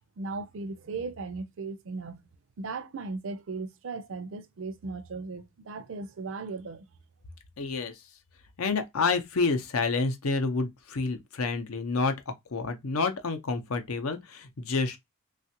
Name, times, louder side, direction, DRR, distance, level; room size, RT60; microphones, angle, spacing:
voice 1, 0.2-2.3 2.6-6.9, right 3 dB, 60° right, 0.4 m, -37 dB
voice 2, 7.6-7.9 8.6-12.1 12.5-15.0, left 4 dB, 75° left, 0.7 m, -28 dB
3.2 x 2.4 x 2.8 m
head